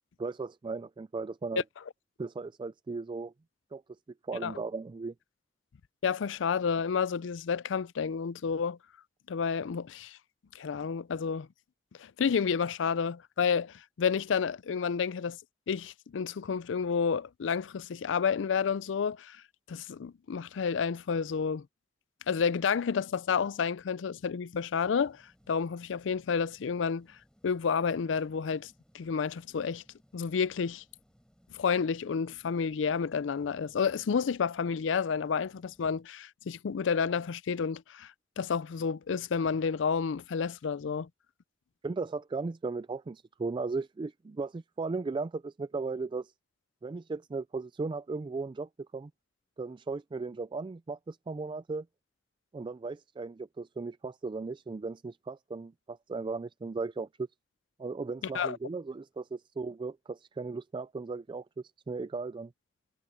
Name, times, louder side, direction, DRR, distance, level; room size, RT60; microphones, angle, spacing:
voice 1, 0.2-1.6 2.2-3.3 3.7-3.8 4.2-5.1 41.8-46.3 46.8-49.1 49.6-51.9 52.5-57.3 57.8-61.5 61.9-62.5, right 3 dB, 25° right, 0.3 m, -36 dB
voice 2, 6.0-8.8 9.3-10.2 10.5-11.5 12.0-15.4 15.7-19.4 19.7-21.7 22.3-25.2 25.5-27.1 27.4-29.8 30.1-30.8 31.5-38.1 38.4-41.1 58.3-58.6, left 6 dB, 80° left, 0.4 m, -30 dB
sound 1, 24.9-36.0, equal, 5° left, 4.8 m, -66 dB
head